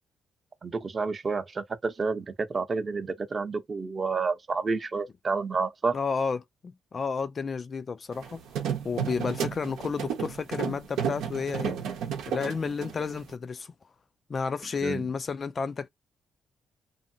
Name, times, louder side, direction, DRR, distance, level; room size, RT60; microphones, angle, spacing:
voice 1, 0.6-5.9 14.8-15.0, right 4 dB, 35° right, 0.7 m, -30 dB
voice 2, 5.9-8.4 8.8-11.8 12.3-13.7 14.3-15.9, left 5 dB, 40° left, 0.3 m, -31 dB
sound 1, 8.1-13.3, right 8 dB, 85° right, 0.8 m, -32 dB
2.6 x 2.5 x 2.6 m
cardioid pair, 90°, 0 cm